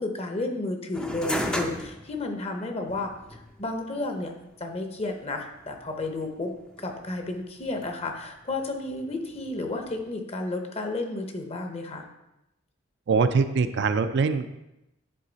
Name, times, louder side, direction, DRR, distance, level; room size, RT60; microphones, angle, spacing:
voice 1, 0.0-4.3 4.6-12.0, left 2 dB, 30° left, 4 dB, 0.7 m, -32 dB
sound 1, 0.9-10.1, equal, 5° left, 0.4 m, -37 dB
voice 2, 13.1-14.5, right 4 dB, 55° right, 10 dB, 0.4 m, -23 dB
10.0 x 3.9 x 4.0 m, 0.90 s
head